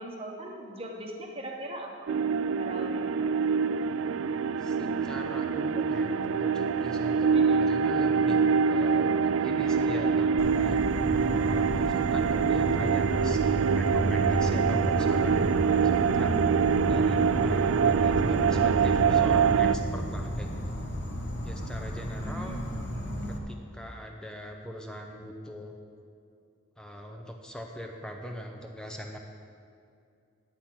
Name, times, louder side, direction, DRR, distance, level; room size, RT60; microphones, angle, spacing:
voice 1, 0.0-1.9 2.4-3.4 7.3-7.7 22.2-23.5, right 1 dB, 25° right, 1 dB, 1.1 m, -40 dB
sound 1, 2.1-19.8, right 6 dB, 70° right, 0.3 m, -25 dB
voice 2, 4.6-8.4 8.7-10.8 11.4-16.4 16.9-20.8 21.4-22.6 23.3-25.8 26.8-29.2, equal, 5° left, 2 dB, 0.6 m, -41 dB
Insect, 10.4-23.4, equal, 55° left, 1.0 m, -33 dB
10.0 x 8.0 x 6.0 m, 2.5 s
head